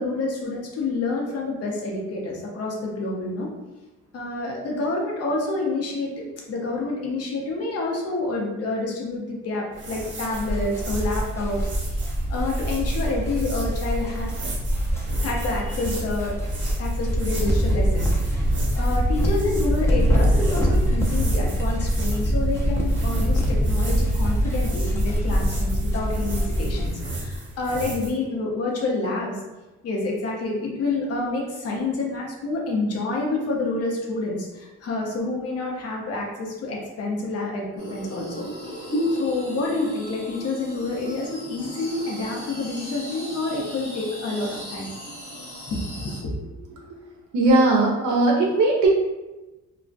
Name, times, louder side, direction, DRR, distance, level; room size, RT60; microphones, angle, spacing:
voice 1, 0.0-3.5 4.1-12.0 12.3-14.3 15.2-16.3 16.8-18.1 18.8-29.4 29.8-38.4 38.7-38.8 39.1-44.9 46.0-46.3, left 3 dB, 55° left, -2 dB, 0.7 m, -28 dB
sound 1, 9.7-28.1, right 1 dB, 40° right, 0.7 m, -36 dB
sound 2, 10.3-26.9, equal, 10° left, 0.5 m, -24 dB
sound 3, 37.8-46.2, equal, 80° left, 1.1 m, -34 dB
voice 2, 47.3-48.9, right 2 dB, 80° right, -2 dB, 0.5 m, -18 dB
2.3 x 2.1 x 2.5 m, 1.1 s
cardioid pair, 90°, 30 cm